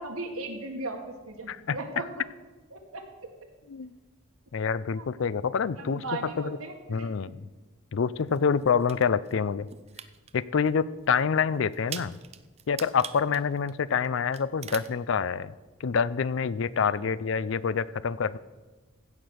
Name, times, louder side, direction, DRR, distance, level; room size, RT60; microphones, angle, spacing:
voice 1, 0.0-2.1 2.7-3.0 4.9-5.1 5.8-7.1 16.8-17.0, right 2 dB, 85° right, 4 dB, 1.8 m, -37 dB
voice 2, 4.5-6.0 6.4-6.6 6.9-7.5 7.9-9.7 10.3-12.1 12.7-15.5 15.8-18.4, left 6 dB, 60° left, 18 dB, 0.4 m, -27 dB
sound 1, 8.3-9.3 9.7-10.3 10.7-10.8 11.2-11.3 11.7-14.1 14.3-14.9, right 9 dB, 30° right, 0.4 m, -42 dB
15.5 x 6.0 x 6.4 m, 1.2 s
head